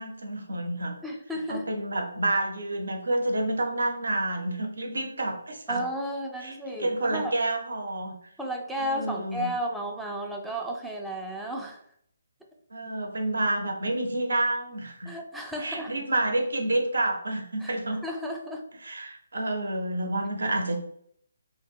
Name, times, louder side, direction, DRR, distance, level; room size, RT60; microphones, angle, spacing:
voice 1, 0.0-1.0 1.5-5.8 6.4-8.1 8.8-9.5 12.7-15.1 15.6-18.0 18.8-20.8, right 2 dB, 80° right, 3 dB, 0.6 m, -29 dB
voice 2, 1.0-1.7 5.7-7.4 8.4-11.8 15.0-15.9 17.6-17.8 18.0-18.7, equal, ahead, -1 dB, 0.3 m, -33 dB
2.1 x 2.0 x 3.5 m, 0.66 s
hypercardioid pair, 155°, 0 cm